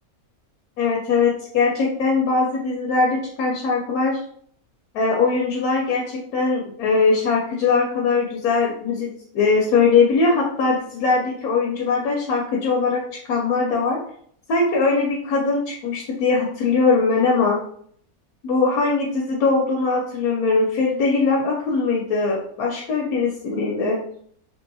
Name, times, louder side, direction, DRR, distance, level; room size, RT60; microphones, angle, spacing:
voice 1, 0.8-4.2 4.9-13.0 13.3-14.0 14.5-17.6 18.4-24.0, left 4 dB, 80° left, -1 dB, 1.1 m, -21 dB
3.0 x 2.6 x 2.7 m, 0.62 s
omnidirectional pair, 1.6 m